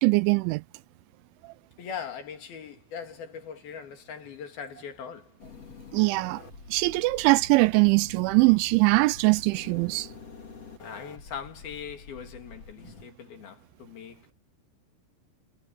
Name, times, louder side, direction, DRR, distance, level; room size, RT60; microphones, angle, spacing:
voice 1, 0.0-0.6 1.4-1.5 5.9-6.4 6.7-10.1, right 24 dB, 85° right, 2.9 m, -22 dB
voice 2, 1.8-5.4 10.8-14.3, left 7 dB, 55° left, 4.0 m, -40 dB
sound 1, 5.4-13.1, left 4 dB, 35° left, 3.2 m, -47 dB
omnidirectional pair, 5.5 m